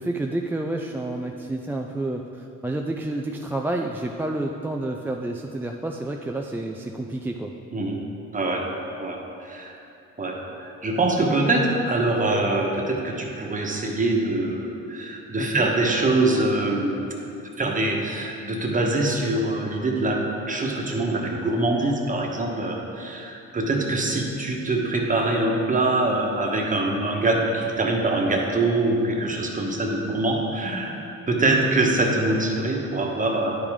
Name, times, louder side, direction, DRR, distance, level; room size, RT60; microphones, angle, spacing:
voice 1, 0.0-7.5 15.4-15.7, right 2 dB, 5° right, 1 dB, 0.3 m, -29 dB
voice 2, 8.3-8.7 9.0-9.8 10.2-17.0 17.6-31.0 31.3-33.6, right 2 dB, 25° right, 0 dB, 1.2 m, -24 dB
10.5 x 5.0 x 3.6 m, 2.8 s
cardioid pair, 90°, 30 cm